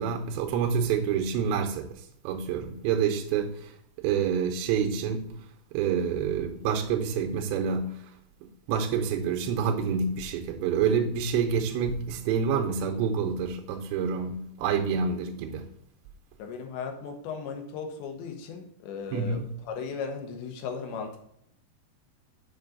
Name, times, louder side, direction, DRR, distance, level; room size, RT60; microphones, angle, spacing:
voice 1, 0.0-1.9 2.2-3.7 4.0-5.3 5.7-8.0 8.4-15.7 19.1-19.5, right 6 dB, 85° right, 2.9 m, -27 dB
voice 2, 16.4-21.2, left 5 dB, 80° left, 3.1 m, -36 dB
7.0 x 5.2 x 3.8 m
omnidirectional pair, 5.3 m